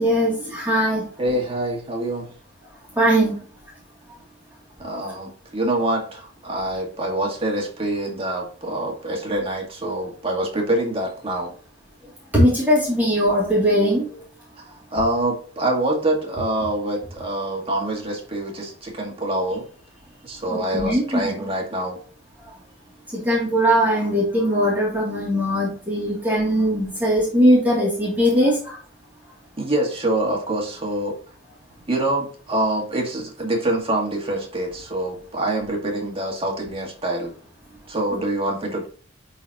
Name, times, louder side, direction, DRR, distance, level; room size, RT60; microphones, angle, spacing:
voice 1, 0.0-1.0 3.0-3.3 12.3-14.1 20.5-21.3 23.1-28.5, equal, 10° right, -7 dB, 2.6 m, -20 dB
voice 2, 1.2-2.3 4.8-11.5 14.6-19.7 20.2-22.0 29.6-31.2 31.9-37.4 37.9-38.9, right 1 dB, 30° right, 0 dB, 1.8 m, -25 dB
11.0 x 4.2 x 2.9 m, 0.43 s
head